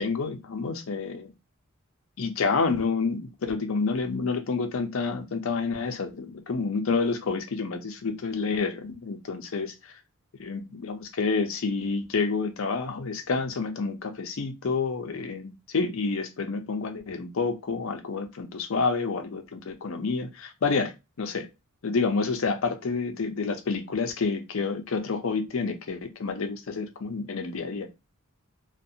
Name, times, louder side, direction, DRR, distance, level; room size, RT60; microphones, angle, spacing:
voice 1, 0.0-1.3 2.2-9.7 10.4-20.9 21.2-21.5 21.8-27.9, left 4 dB, 65° left, 0.5 m, -29 dB
2.4 x 2.2 x 2.7 m
head